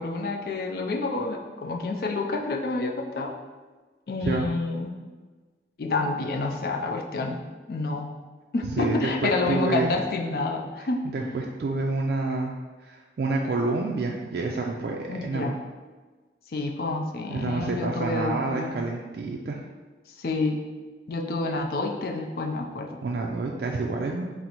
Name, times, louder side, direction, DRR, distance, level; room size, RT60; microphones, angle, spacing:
voice 1, 0.0-3.3 4.1-4.9 5.8-7.4 7.7-8.1 8.5-11.0 15.1-15.6 16.5-18.7 20.2-20.6 21.1-23.0, left 3 dB, 55° left, 2 dB, 0.4 m, -28 dB
voice 2, 4.2-4.5 8.8-9.9 10.8-12.6 12.8-15.6 17.3-19.6 23.0-24.3, right 3 dB, 60° right, 0 dB, 0.3 m, -28 dB
3.9 x 2.0 x 4.3 m, 1.3 s
head